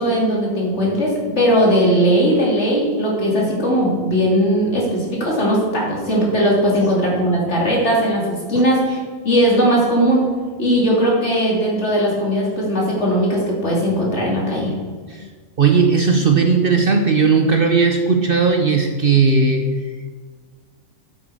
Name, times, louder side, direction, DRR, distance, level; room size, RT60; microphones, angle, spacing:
voice 1, 0.0-9.0 9.2-10.2 10.6-14.7, equal, 55° left, -3 dB, 2.8 m, -18 dB
voice 2, 15.6-19.6, right 5 dB, 50° right, 4 dB, 0.8 m, -16 dB
9.1 x 8.3 x 4.7 m, 1.5 s
omnidirectional pair, 1.4 m